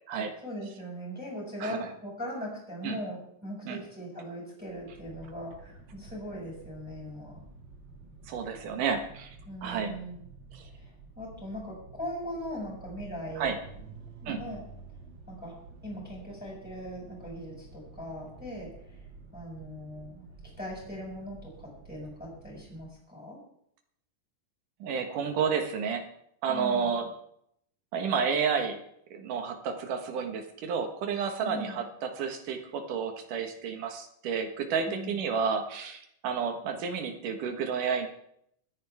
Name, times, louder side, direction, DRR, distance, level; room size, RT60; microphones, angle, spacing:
voice 1, 0.4-7.4 9.4-10.2 10.7-13.6 14.2-14.6 15.3-15.6 15.8-19.0 19.3-20.3 20.6-23.4 26.5-26.9 31.4-31.8 34.8-35.2, equal, 5° right, -4 dB, 6.4 m, -40 dB
sound 1, 4.6-23.0, right 3 dB, 40° right, 1.9 m, -50 dB
voice 2, 8.3-9.4 9.6-9.9 10.5-10.6 13.4-13.6 14.3-14.4 24.8-26.0 26.4-27.1 27.9-28.8 29.1-38.1, right 6 dB, 75° right, 5 dB, 3.1 m, -31 dB
25.5 x 10.5 x 3.6 m, 0.71 s
omnidirectional pair, 3.7 m